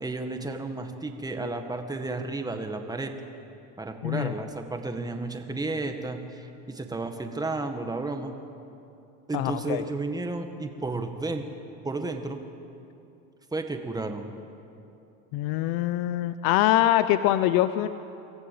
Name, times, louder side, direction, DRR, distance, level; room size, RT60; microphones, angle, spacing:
voice 1, 0.0-3.1 3.8-8.3 9.3-11.5 11.8-12.4 13.5-14.3, right 2 dB, 10° right, 5 dB, 1.8 m, -32 dB
voice 2, 4.0-4.3 9.3-9.8 15.3-17.9, left 14 dB, 65° left, 12 dB, 0.8 m, -24 dB
24.0 x 14.0 x 8.6 m, 2.8 s
supercardioid pair, 115°, 38 cm